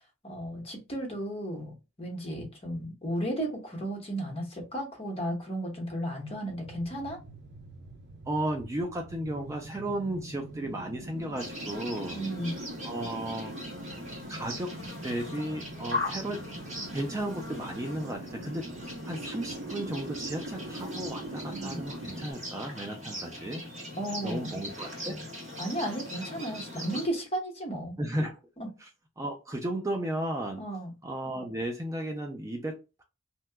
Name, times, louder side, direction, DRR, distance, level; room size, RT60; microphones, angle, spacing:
voice 1, 0.2-7.2 12.1-12.6 21.5-21.8 24.0-24.6 25.6-28.0 28.6-28.7 30.6-30.9, right 1 dB, 30° left, 0.9 m, -34 dB
sound 1, 6.6-22.3, right 2 dB, 60° right, 0.6 m, -43 dB
voice 2, 8.3-12.2 12.8-13.6 14.3-14.8 15.0-16.5 16.9-23.6 24.2-25.3 28.0-28.4 28.8-28.9 29.2-30.6 31.0-33.0, right 1 dB, 15° right, 0.4 m, -34 dB
sound 2, 11.4-27.1, left 1 dB, 35° right, 1.5 m, -40 dB
2.8 x 2.2 x 3.3 m
head